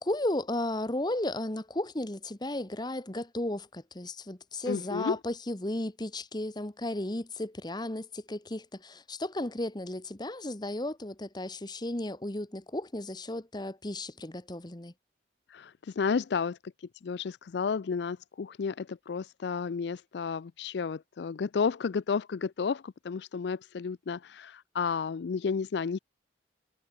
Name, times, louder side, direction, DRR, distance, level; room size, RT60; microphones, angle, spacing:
voice 1, 0.0-14.9, left 1 dB, 25° left, 1.3 m, -34 dB
voice 2, 4.7-5.2 15.5-16.6 17.0-26.0, left 5 dB, 65° left, 0.4 m, -32 dB
head